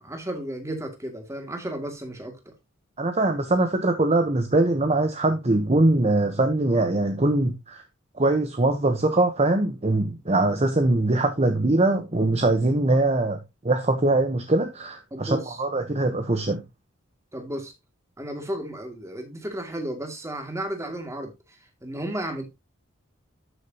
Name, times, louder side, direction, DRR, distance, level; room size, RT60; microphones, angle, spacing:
voice 1, 0.0-2.5 15.1-15.6 17.3-17.7 18.2-22.4, right 1 dB, 15° right, 2.3 m, -33 dB
voice 2, 3.0-7.8 8.2-13.4 13.6-16.6, right 2 dB, 30° right, 1.0 m, -22 dB
12.5 x 6.6 x 2.9 m
head